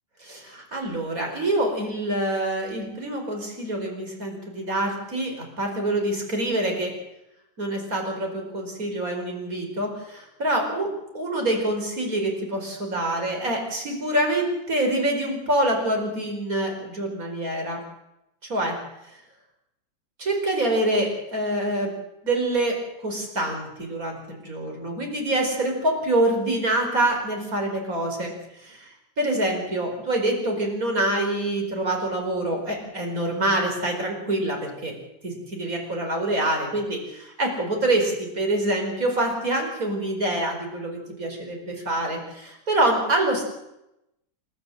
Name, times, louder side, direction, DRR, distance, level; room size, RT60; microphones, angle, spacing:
voice 1, 0.2-7.0 7.6-17.8 18.5-18.8 20.2-22.0 22.2-28.3 28.6-34.9 35.2-43.4, right 1 dB, 55° right, 3 dB, 5.3 m, -26 dB
29.5 x 12.0 x 7.8 m, 0.88 s
omnidirectional pair, 1.8 m